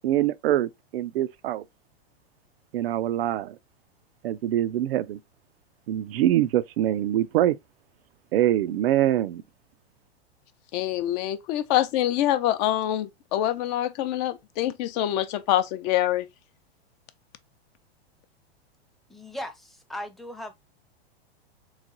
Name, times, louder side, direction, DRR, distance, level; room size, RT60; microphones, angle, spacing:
voice 1, 0.0-1.6 2.7-3.6 4.2-5.2 5.9-7.6 8.3-9.4, right 12 dB, 70° right, 0.5 m, -24 dB
voice 2, 10.7-16.3, left 13 dB, 45° left, 0.6 m, -25 dB
voice 3, 19.1-20.5, left 1 dB, ahead, 0.6 m, -37 dB
3.6 x 3.2 x 3.8 m
hypercardioid pair, 120°, 31 cm